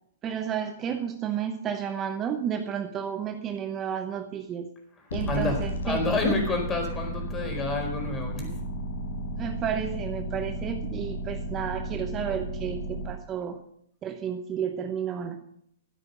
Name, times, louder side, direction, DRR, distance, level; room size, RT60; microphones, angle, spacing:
voice 1, 0.2-4.7 5.1-6.4 9.4-13.6 14.0-15.4, right 8 dB, 25° right, 7 dB, 1.0 m, -32 dB
sound 1, 5.1-13.1, equal, 75° left, 4.5 m, -33 dB
voice 2, 5.3-5.6 5.8-8.5, left 3 dB, 20° left, 3 dB, 4.5 m, -28 dB
13.5 x 9.3 x 5.5 m, 0.71 s
hypercardioid pair, 125°, 0 cm